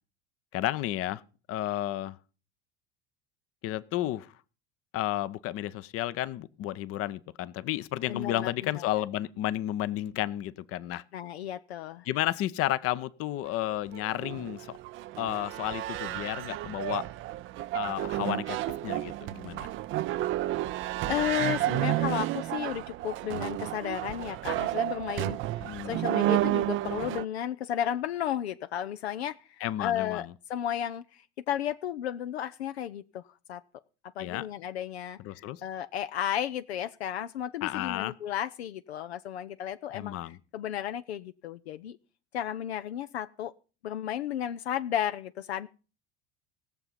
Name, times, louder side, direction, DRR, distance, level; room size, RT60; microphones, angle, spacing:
voice 1, 0.5-1.2 1.5-2.2 3.6-4.3 4.9-11.0 12.0-14.7 15.2-17.1 17.7-18.6 18.8-19.7 25.6-26.0 29.6-30.3 34.2-34.4 35.2-35.6 37.6-38.1 39.9-40.4, left 14 dB, 45° left, 16 dB, 0.8 m, -32 dB
voice 2, 8.1-8.9 11.1-12.1 20.8-33.2 33.5-33.6 34.2-40.2 40.5-42.0 42.3-43.5 43.8-45.7, left 10 dB, 75° left, 11 dB, 0.6 m, -33 dB
sound 1, 13.7-27.2, right 15 dB, 40° right, 0.5 m, -31 dB
18.5 x 6.8 x 5.6 m, 0.36 s
figure-of-eight pair, 70°, 32 cm